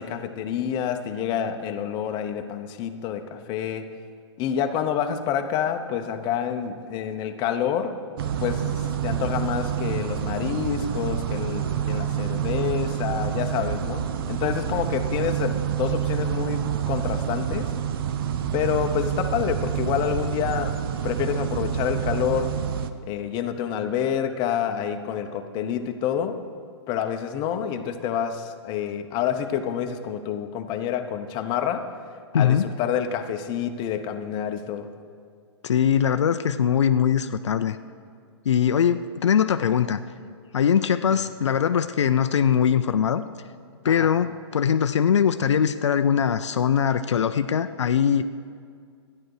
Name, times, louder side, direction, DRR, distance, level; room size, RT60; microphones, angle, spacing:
voice 1, 0.0-3.9 4.4-17.7 18.5-20.8 21.0-22.6 23.1-26.4 26.9-31.9 32.4-34.9 43.8-44.1, left 8 dB, 30° left, 6 dB, 0.8 m, -28 dB
sound 1, 8.2-22.9, right 9 dB, 55° right, 0.7 m, -27 dB
voice 2, 32.3-32.6 35.6-37.8 38.5-40.0 40.5-43.2 43.8-48.2, left 8 dB, 80° left, 10 dB, 0.5 m, -21 dB
12.5 x 10.5 x 4.8 m, 2.2 s
hypercardioid pair, 130°, 15 cm